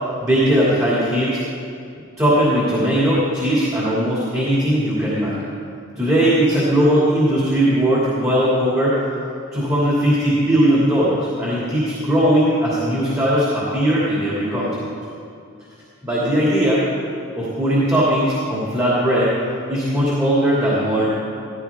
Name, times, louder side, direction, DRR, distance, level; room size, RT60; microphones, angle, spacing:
voice 1, 0.2-1.4 2.2-5.4 6.0-9.0 9.5-14.9 16.0-16.8 17.3-19.3 19.7-21.1, equal, 15° right, -8 dB, 2.9 m, -18 dB
16.5 x 15.0 x 3.7 m, 2.5 s
head